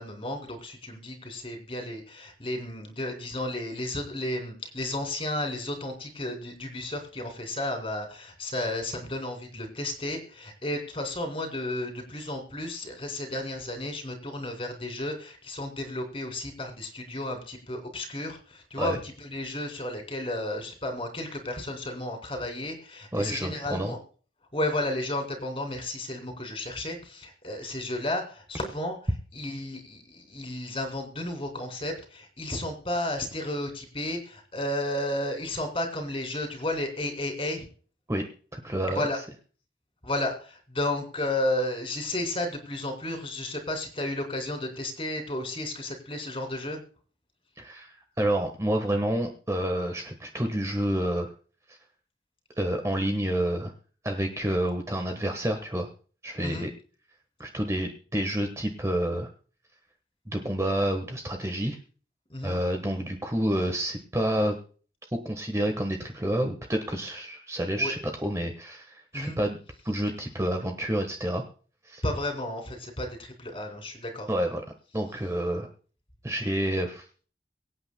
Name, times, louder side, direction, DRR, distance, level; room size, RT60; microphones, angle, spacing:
voice 1, 0.0-24.0 24.5-29.0 29.3-37.6 38.9-39.2 40.0-46.8 56.4-56.7 62.3-62.6 67.8-67.9 69.1-69.4 72.0-74.3, left 1 dB, 30° left, 4 dB, 2.9 m, -33 dB
voice 2, 23.1-23.9 38.1-38.2 38.5-39.0 47.6-51.3 51.7-51.8 52.6-53.7 54.0-55.9 56.2-56.7 57.4-59.3 60.3-61.8 62.4-64.6 65.1-69.6 69.8-71.4 71.8-72.0 74.3-74.6 74.9-75.7 76.2-77.0, right 1 dB, 15° right, 4 dB, 1.2 m, -29 dB
23.5 x 8.9 x 2.2 m, 0.40 s
head